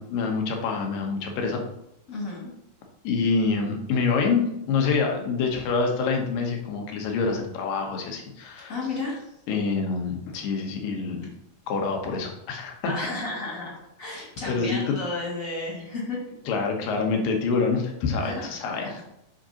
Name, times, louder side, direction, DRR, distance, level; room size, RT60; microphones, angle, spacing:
voice 1, 0.0-1.6 3.0-8.7 9.5-11.2 11.7-12.9 14.5-15.0 16.5-18.9, left 4 dB, 75° left, 2 dB, 2.7 m, -26 dB
voice 2, 2.1-2.5 8.7-9.3 12.8-13.7 14.0-16.2 18.2-18.4 18.7-19.0, left 3 dB, 30° left, -4 dB, 2.0 m, -33 dB
7.6 x 5.9 x 2.9 m, 0.81 s
omnidirectional pair, 4.1 m